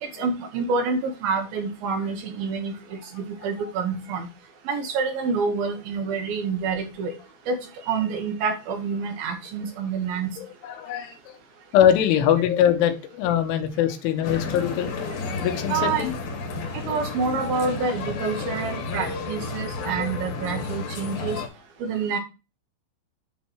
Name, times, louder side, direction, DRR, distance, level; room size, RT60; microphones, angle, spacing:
voice 1, 0.0-4.3 4.7-7.1 7.5-10.4 15.7-16.1 16.7-21.4 21.8-22.2, right 5 dB, 80° right, 5 dB, 2.1 m, -27 dB
voice 2, 10.4-11.4 11.7-14.9 15.4-16.1 20.0-20.1, left 10 dB, 90° left, 6 dB, 3.6 m, -22 dB
sound 1, 14.2-21.5, left 4 dB, 60° left, 2.7 m, -32 dB
9.3 x 3.1 x 5.7 m, 0.29 s
omnidirectional pair, 5.4 m